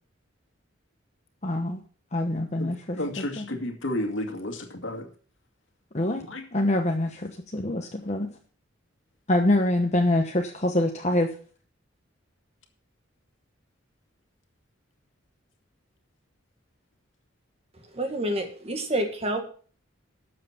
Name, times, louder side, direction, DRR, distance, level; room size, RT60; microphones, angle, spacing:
voice 1, 1.4-1.8 2.1-3.5 5.9-6.2 6.5-8.3 9.3-11.3, left 1 dB, 35° left, 3 dB, 1.1 m, -25 dB
voice 2, 2.6-5.1 6.3-6.4, left 1 dB, 70° left, 5 dB, 2.2 m, -32 dB
voice 3, 17.9-19.4, right 1 dB, 30° right, 5 dB, 1.9 m, -28 dB
12.5 x 7.7 x 5.9 m, 0.43 s
head